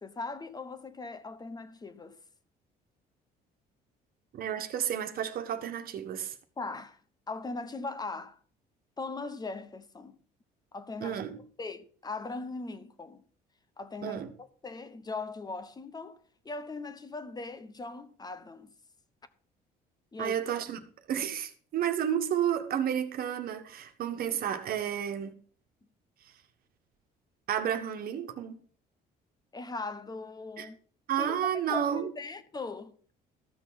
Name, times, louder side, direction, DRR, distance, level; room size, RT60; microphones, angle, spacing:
voice 1, 0.0-2.2 6.6-7.0 7.3-8.4 9.0-10.2 10.7-11.2 11.6-13.2 13.8-16.2 16.4-18.7 20.1-20.4 29.5-30.8 31.2-32.9, left 3 dB, 25° left, 1.1 m, -39 dB
voice 2, 4.3-6.3 11.0-11.4 14.0-14.3 20.2-25.3 27.5-28.6 30.6-30.7 31.1-32.1, right 9 dB, 60° right, 1.5 m, -31 dB
14.0 x 6.3 x 5.9 m
cardioid pair, 110°, 17 cm